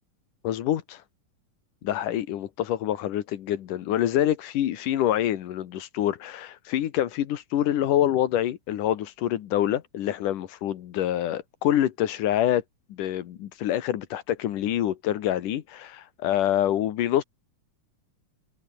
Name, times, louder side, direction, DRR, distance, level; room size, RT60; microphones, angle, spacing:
voice 1, 0.4-1.0 1.8-12.6 12.9-17.2, left 12 dB, 85° left, 3.0 m, -26 dB
omnidirectional pair, 3.6 m